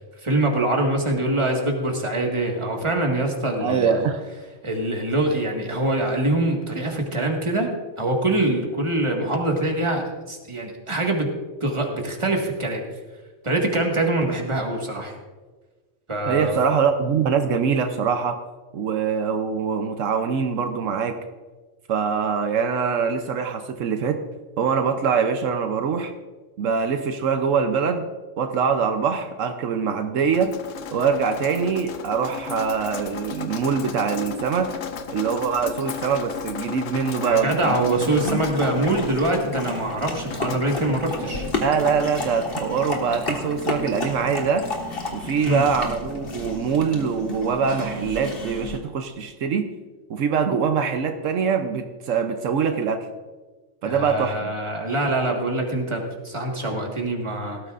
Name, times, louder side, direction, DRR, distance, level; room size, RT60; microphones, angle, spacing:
voice 1, 0.2-3.9 4.6-7.7 8.0-11.3 11.6-12.8 13.4-15.2 16.1-16.5 37.2-41.5 45.5-45.6 53.8-57.6, right 2 dB, 25° right, 1 dB, 1.7 m, -24 dB
voice 2, 3.6-4.2 16.3-18.4 18.7-21.2 21.9-24.2 24.6-26.1 26.6-28.1 28.4-30.5 30.9-34.7 35.1-37.9 38.2-38.4 41.6-44.7 45.1-49.7 50.1-53.1 53.8-54.5, right 6 dB, 80° right, 7 dB, 1.1 m, -23 dB
Drip, 30.3-45.8, left 8 dB, 85° left, 1.2 m, -37 dB
sound 1, 37.9-48.8, left 2 dB, 50° left, 1.8 m, -32 dB
17.5 x 13.0 x 2.5 m, 1.3 s
omnidirectional pair, 1.3 m